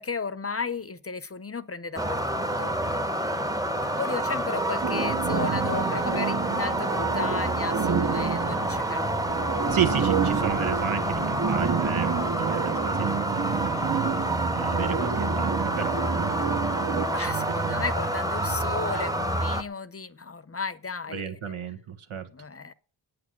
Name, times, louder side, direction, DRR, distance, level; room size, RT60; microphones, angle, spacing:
voice 1, 0.0-2.8 3.9-9.4 17.1-21.7 22.3-22.7, left 5 dB, 30° left, 0.7 m, -34 dB
sound 1, 2.0-19.6, right 1 dB, 5° right, 0.9 m, -28 dB
sound 2, 4.8-17.1, right 7 dB, 40° right, 1.0 m, -30 dB
voice 2, 9.7-16.0 17.1-17.9 21.1-22.3, right 8 dB, 90° right, 1.7 m, -33 dB
9.0 x 8.7 x 9.4 m
wide cardioid pair, 130°, 48 cm